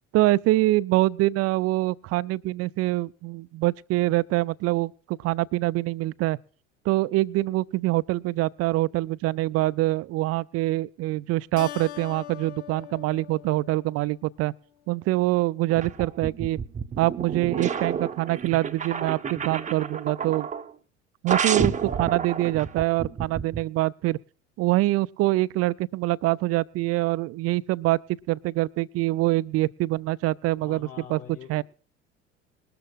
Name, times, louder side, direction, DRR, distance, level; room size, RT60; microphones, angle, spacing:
voice 1, 0.1-6.4 6.9-14.5 14.9-16.6 17.0-20.5 21.2-24.2 24.6-28.0 28.3-31.2 31.5-31.6, right 18 dB, 45° right, 0.5 m, -25 dB
Keyboard (musical), 11.6-14.4, left 12 dB, 70° left, 0.9 m, -42 dB
sound 1, 15.7-20.7 21.3-23.6, right 6 dB, 20° right, 0.8 m, -30 dB
voice 2, 30.6-31.6, left 8 dB, 45° left, 4.3 m, -44 dB
21.0 x 12.5 x 2.5 m
figure-of-eight pair, 65°, 35 cm